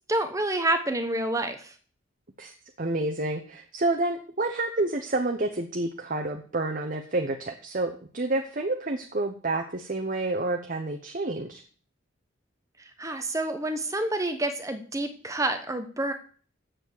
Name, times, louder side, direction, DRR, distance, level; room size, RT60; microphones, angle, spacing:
voice 1, 0.1-1.7 13.0-16.1, right 1 dB, 15° right, 7 dB, 1.0 m, -28 dB
voice 2, 2.4-11.6, right 2 dB, 40° right, 3 dB, 0.9 m, -29 dB
7.7 x 7.2 x 8.2 m, 0.43 s
head